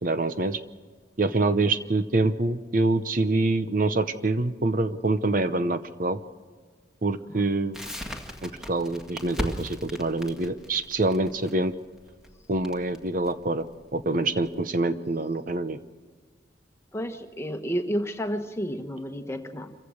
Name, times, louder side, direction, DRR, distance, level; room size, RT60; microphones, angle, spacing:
voice 1, 0.0-0.6 1.2-6.2 7.0-7.8 8.4-11.7 12.5-13.6 13.9-15.8, right 2 dB, 45° right, 10 dB, 0.8 m, -25 dB
Crackle, 7.7-14.5, equal, 5° right, 1.7 m, -38 dB
voice 2, 16.9-19.7, equal, 15° left, 6 dB, 1.3 m, -31 dB
27.0 x 15.5 x 6.5 m, 1.5 s
head